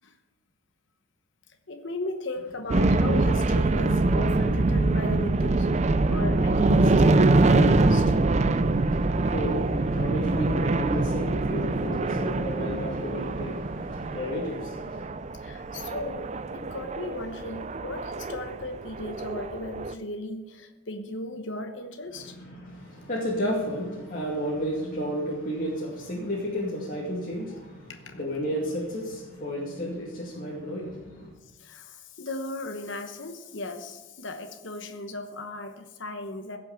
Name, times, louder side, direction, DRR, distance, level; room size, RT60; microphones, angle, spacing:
voice 1, 1.7-8.2 15.4-22.4 28.1-28.4 31.6-36.6, left 2 dB, 65° left, 5 dB, 1.1 m, -36 dB
sound 1, 2.7-19.9, right 2 dB, 35° right, 0.4 m, -24 dB
voice 2, 8.5-15.1 22.1-31.3, equal, 40° left, -5 dB, 2.3 m, -33 dB
16.0 x 6.1 x 7.1 m, 1.1 s
head